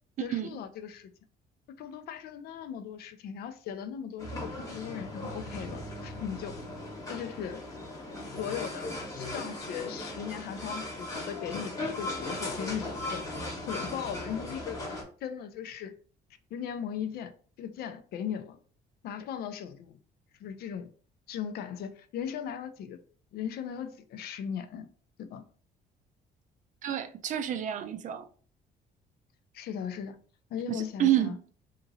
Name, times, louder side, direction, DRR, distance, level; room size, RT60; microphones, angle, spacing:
voice 1, 0.2-1.1 1.8-6.6 7.1-7.6 8.4-8.9 9.2-13.3 13.6-14.8 15.2-15.9 16.5-17.3 17.6-18.6 19.0-20.0 20.4-20.9 21.3-23.0 23.3-24.9 25.2-25.4 29.5-30.2 30.5-31.4, left 8 dB, 65° left, 0.4 m, -38 dB
sound 1, 4.2-15.0, left 1 dB, 20° left, 1.0 m, -38 dB
voice 2, 26.8-28.3 30.7-31.4, right 12 dB, 50° right, 0.4 m, -29 dB
2.8 x 2.5 x 2.7 m
cardioid pair, 110°, 17 cm